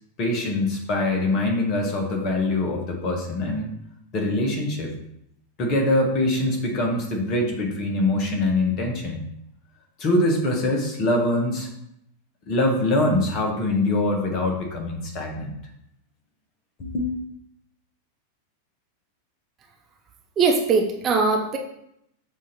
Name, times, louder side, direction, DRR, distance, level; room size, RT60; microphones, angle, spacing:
voice 1, 0.2-3.7 4.1-4.9 5.6-9.2 10.0-11.7 12.5-15.6 16.8-17.2, left 2 dB, 35° left, 1 dB, 1.4 m, -23 dB
voice 2, 20.4-21.6, right 4 dB, 25° right, 2 dB, 0.7 m, -20 dB
7.1 x 2.9 x 5.1 m, 0.77 s
figure-of-eight pair, 90°, 0 cm